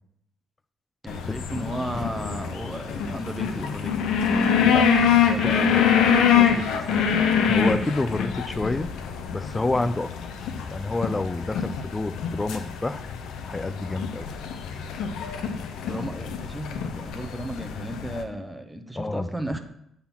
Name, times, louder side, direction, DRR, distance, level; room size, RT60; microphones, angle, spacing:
voice 1, 1.0-3.9 4.6-4.9 5.2-7.2 9.7-9.9 15.8-19.6, right 1 dB, 5° right, 5 dB, 0.9 m, -34 dB
sound 1, 1.1-18.2, left 7 dB, 80° left, 0.7 m, -25 dB
voice 2, 4.5-4.9 5.3-5.6 7.5-9.0 9.3-13.0 13.5-14.3 19.0-19.3, left 2 dB, 20° left, 13 dB, 0.5 m, -29 dB
8.5 x 3.9 x 6.0 m, 0.75 s
cardioid pair, 90°, 0 cm